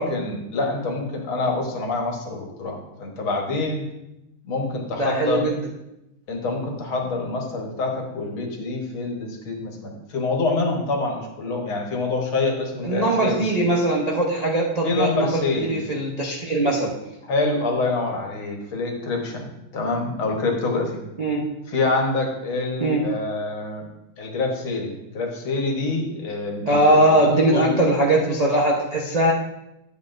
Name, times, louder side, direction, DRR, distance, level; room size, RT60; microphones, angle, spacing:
voice 1, 0.0-3.8 4.4-5.5 6.3-13.5 14.8-15.8 17.2-21.0 21.7-23.9 24.2-27.1 27.5-27.8, left 3 dB, 75° left, 1 dB, 2.1 m, -26 dB
voice 2, 5.0-5.6 12.8-16.9 21.2-21.5 22.8-23.0 26.7-29.3, right 1 dB, 45° right, -3 dB, 0.5 m, -20 dB
11.0 x 8.2 x 2.6 m, 0.88 s
omnidirectional pair, 2.3 m